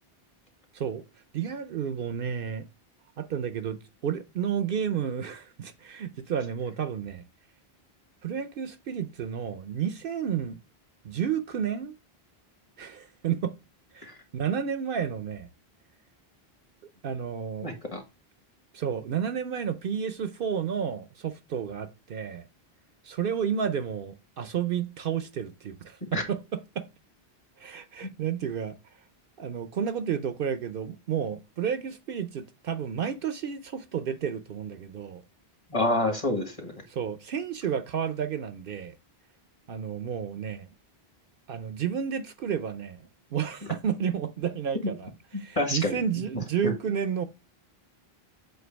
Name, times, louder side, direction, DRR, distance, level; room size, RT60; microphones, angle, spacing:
voice 1, 1.3-2.7 3.2-3.8 4.0-7.2 8.2-10.6 11.0-11.9 12.8-13.6 13.9-15.5 17.0-17.7 18.7-22.5 23.0-26.9 27.6-28.7 29.4-35.2 36.9-38.9 39.7-40.7 41.5-47.3, right 8 dB, 65° right, 0.7 m, -31 dB
voice 2, 17.6-18.0 26.1-26.2 28.0-28.1 35.7-36.7 45.6-45.9 46.6-46.7, left 2 dB, 35° left, 1.3 m, -27 dB
7.9 x 2.6 x 5.0 m
omnidirectional pair, 1.0 m